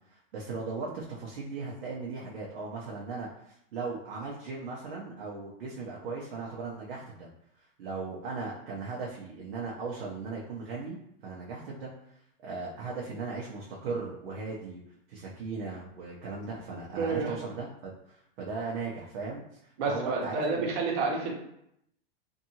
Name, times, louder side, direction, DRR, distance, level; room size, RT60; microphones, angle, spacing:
voice 1, 0.1-7.3 7.8-11.0 11.2-11.9 12.4-14.8 15.1-19.4 19.9-20.7, right 4 dB, 80° right, -4 dB, 0.8 m, -37 dB
voice 2, 17.0-17.4 19.8-21.3, right 4 dB, 55° right, -1 dB, 1.0 m, -29 dB
2.7 x 2.5 x 2.8 m, 0.76 s
supercardioid pair, 150°, 30 cm